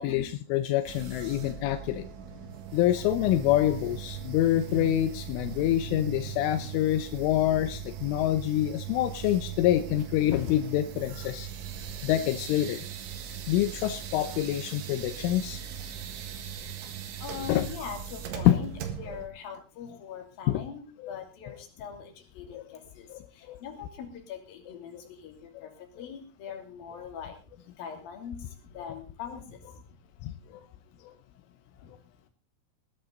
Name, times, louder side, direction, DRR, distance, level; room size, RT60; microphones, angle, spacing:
voice 1, 0.0-2.1 2.7-11.5 12.0-12.9 13.5-15.6 17.5-17.7 18.5-18.6 20.5-20.6 21.0-21.1 22.5-22.6 23.1-23.2 23.5-23.6 30.2-30.6 31.0-31.1, left 13 dB, 85° left, 10 dB, 3.4 m, -26 dB
sound 1, 0.9-19.3, right 9 dB, 75° right, 3.9 m, -40 dB
voice 2, 2.2-3.6 4.1-5.0 5.4-6.7 17.2-18.7 19.0-23.1 23.3-27.4 27.8-29.6, left 5 dB, 55° left, 3 dB, 4.1 m, -42 dB
19.5 x 11.5 x 3.9 m, 0.34 s
omnidirectional pair, 5.6 m